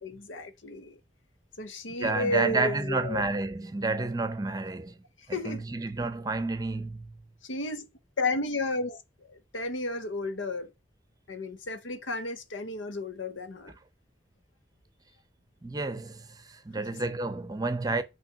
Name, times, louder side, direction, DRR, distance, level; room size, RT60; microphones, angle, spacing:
voice 1, 0.0-1.0 1.6-3.2 5.3-5.6 7.4-7.9 8.2-10.7 11.3-13.7, left 2 dB, 90° left, 0.9 m, -33 dB
voice 2, 2.0-5.0 5.3-7.2 15.6-18.0, right 3 dB, 20° right, 0.6 m, -30 dB
5.9 x 3.1 x 5.7 m
head